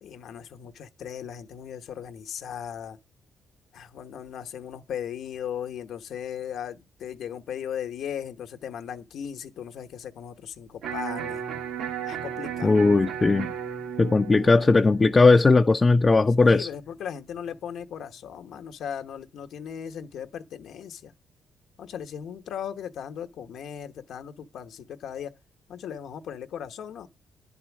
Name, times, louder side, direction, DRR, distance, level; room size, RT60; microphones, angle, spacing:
voice 1, 0.0-3.0 3.7-11.4 12.0-12.7 14.3-14.4 16.4-21.1 21.8-25.3 25.7-27.1, left 8 dB, 75° left, 1.0 m, -37 dB
Electric guitar, 10.8-16.9, right 8 dB, 85° right, 2.4 m, -36 dB
voice 2, 12.6-13.5 14.0-16.7, left 3 dB, 25° left, 0.5 m, -18 dB
10.5 x 4.3 x 7.2 m
cardioid pair, 90°, 0 cm